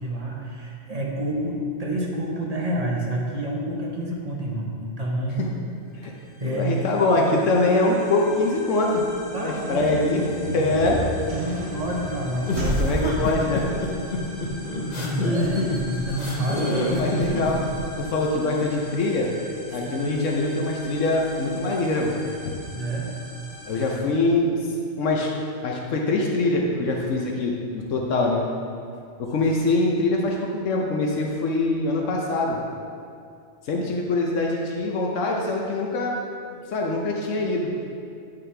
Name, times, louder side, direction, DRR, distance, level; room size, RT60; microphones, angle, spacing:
voice 1, 0.0-5.5 6.0-6.1 6.4-6.7 9.3-10.2 10.5-10.7 11.3-13.3 14.9-17.1 19.7-20.1 22.8-23.1, right 1 dB, 35° right, -2 dB, 1.0 m, -29 dB
sound 1, 5.9-24.0, left 1 dB, 15° left, 1.2 m, -42 dB
voice 2, 6.5-9.0 9.4-10.2 10.5-11.0 12.6-13.6 16.9-17.6 18.0-19.3 19.7-22.1 22.4-22.6 23.7-24.5 25.0-25.3 25.6-28.4 29.2-30.4 30.6-32.6 33.6-36.1 36.7-37.7, left 2 dB, 80° left, -1 dB, 1.1 m, -23 dB
sound 2, 9.7-18.3, right 1 dB, 55° right, 1.1 m, -33 dB
sound 3, 12.5-17.8, left 1 dB, 40° left, 0.8 m, -27 dB
9.3 x 5.6 x 3.3 m, 2.4 s
omnidirectional pair, 1.3 m